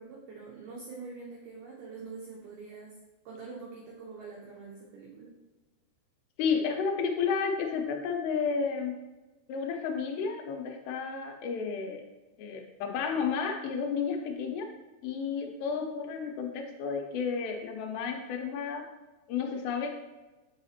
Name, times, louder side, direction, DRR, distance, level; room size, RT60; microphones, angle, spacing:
voice 1, 0.0-3.0 3.3-5.4, right 4 dB, 85° right, -3 dB, 1.8 m, -45 dB
voice 2, 6.4-8.9 9.5-12.0 12.4-14.7 15.0-18.9 19.3-19.9, left 6 dB, 85° left, 3 dB, 2.8 m, -32 dB
8.0 x 4.9 x 2.8 m, 1.1 s
omnidirectional pair, 4.9 m